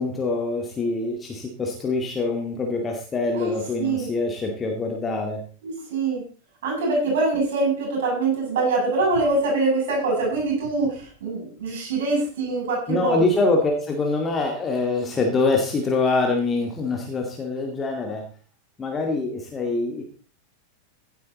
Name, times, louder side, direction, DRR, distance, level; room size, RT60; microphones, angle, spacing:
voice 1, 0.0-5.4 12.9-18.2 18.8-20.0, left 3 dB, 20° left, 1 dB, 2.1 m, -24 dB
voice 2, 5.6-6.2 6.6-13.2, right 3 dB, 55° right, -1 dB, 7.8 m, -24 dB
16.5 x 8.3 x 4.1 m, 0.40 s
figure-of-eight pair, 90°, 0 cm